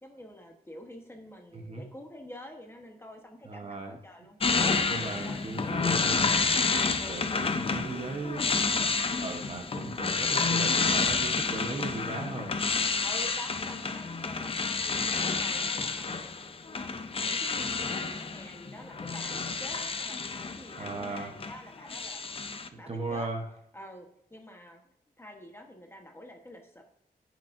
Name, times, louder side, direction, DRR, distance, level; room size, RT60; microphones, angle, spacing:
voice 1, 0.0-6.4 6.9-7.2 13.0-16.9 17.2-22.2 22.8-23.3 23.7-26.8, left 1 dB, 15° left, 2 dB, 1.1 m, -48 dB
voice 2, 1.5-1.8 3.5-4.0 4.9-6.3 7.1-8.4 9.2-12.5 20.8-21.4 22.9-23.4, right 3 dB, 40° right, 3 dB, 1.0 m, -37 dB
sound 1, 4.4-21.6 21.9-22.7, left 4 dB, 35° left, 0.6 m, -29 dB
15.0 x 6.0 x 2.6 m, 0.78 s
wide cardioid pair, 125°, 16 cm